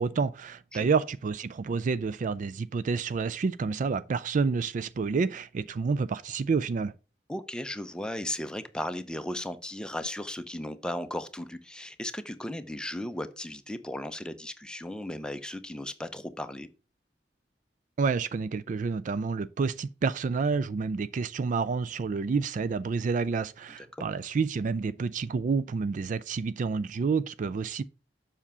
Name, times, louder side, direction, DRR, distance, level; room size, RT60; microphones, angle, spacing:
voice 1, 0.0-6.9 18.0-27.8, right 5 dB, 45° right, 0.3 m, -29 dB
voice 2, 7.3-16.7 23.8-24.1, left 1 dB, 5° left, 0.7 m, -36 dB
7.3 x 5.6 x 5.5 m
head